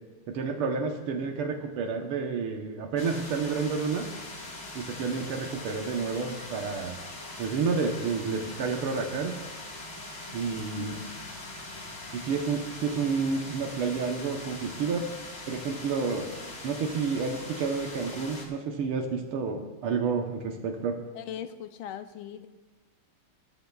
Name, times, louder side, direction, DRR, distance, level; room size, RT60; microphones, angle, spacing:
voice 1, 0.3-4.1 4.7-7.0 7.4-9.4 10.3-11.0 12.1-15.1 15.5-16.3 16.6-21.0, right 5 dB, 90° right, 3 dB, 1.9 m, -30 dB
sound 1, 3.0-18.5, left 2 dB, 35° left, 1.8 m, -42 dB
voice 2, 10.8-11.3 21.1-22.5, left 10 dB, 80° left, 10 dB, 1.4 m, -40 dB
15.0 x 13.5 x 2.3 m, 1.3 s
omnidirectional pair, 2.4 m